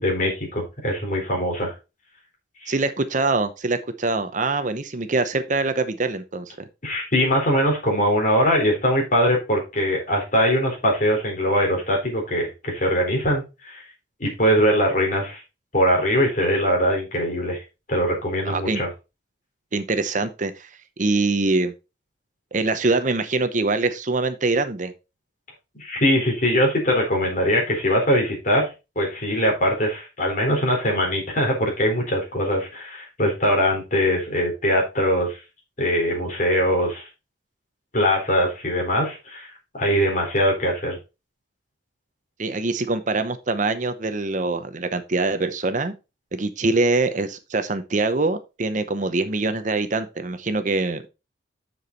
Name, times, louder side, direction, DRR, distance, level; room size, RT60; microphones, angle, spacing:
voice 1, 0.0-1.7 2.6-2.7 6.8-13.8 14.2-15.4 15.7-17.6 17.9-18.9 25.7-28.7 29.0-35.4 35.8-37.1 37.9-39.5 39.7-41.0, equal, 45° left, 0 dB, 4.0 m, -22 dB
voice 2, 2.7-6.7 18.4-18.8 19.7-20.7 21.0-21.7 22.5-24.9 42.4-45.9 46.3-51.1, right 3 dB, 40° right, 10 dB, 0.8 m, -24 dB
7.2 x 6.9 x 4.0 m, 0.27 s
head